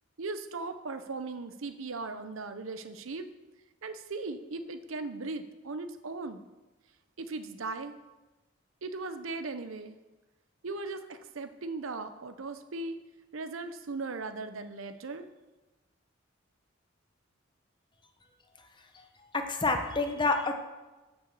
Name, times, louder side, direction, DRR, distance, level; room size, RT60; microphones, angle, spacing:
voice 1, 0.2-3.3 3.8-6.4 7.2-7.9 8.8-10.0 10.6-13.0 13.3-15.2, right 3 dB, 85° right, 10 dB, 0.7 m, -38 dB
voice 2, 19.3-20.5, left 3 dB, 25° left, 5 dB, 0.8 m, -28 dB
6.6 x 5.7 x 7.2 m, 1.1 s
head